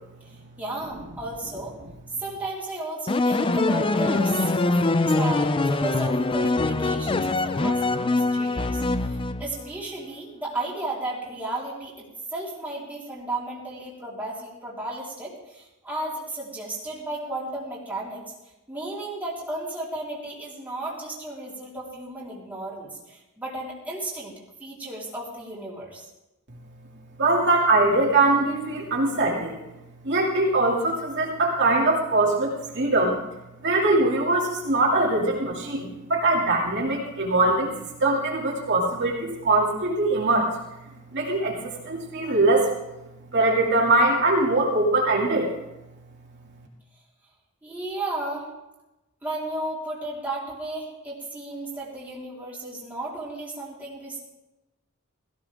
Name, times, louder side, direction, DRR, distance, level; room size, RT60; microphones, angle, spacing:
voice 1, 0.2-1.8 2.2-4.8 5.1-18.2 18.7-24.3 24.6-26.0 47.6-48.5 49.2-54.2, right 2 dB, 10° right, -7 dB, 4.0 m, -34 dB
sound 1, 3.1-9.7, left 2 dB, 25° left, 0.4 m, -23 dB
voice 2, 27.2-29.5 30.0-33.2 33.6-37.7 38.0-40.5 41.1-42.7 43.3-45.5, right 2 dB, 55° right, -3 dB, 2.6 m, -22 dB
17.0 x 15.0 x 3.6 m, 0.98 s
head